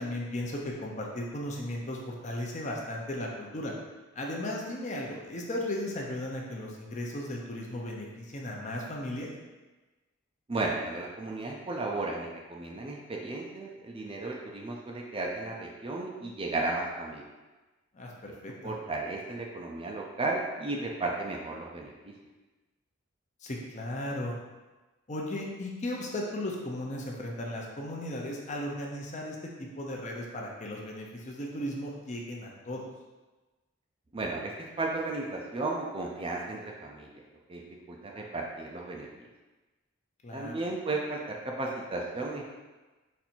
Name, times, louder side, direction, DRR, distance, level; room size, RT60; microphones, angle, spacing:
voice 1, 0.0-3.7 4.2-9.3 17.9-18.5 23.4-24.3 25.1-32.8 40.2-40.6, left 1 dB, 35° left, -1 dB, 0.6 m, -36 dB
voice 2, 10.5-17.2 18.3-18.4 18.6-22.1 34.1-37.1 37.5-37.6 37.9-39.1 40.3-42.4, right 2 dB, 25° right, 0 dB, 0.4 m, -34 dB
4.2 x 2.6 x 4.3 m, 1.2 s
head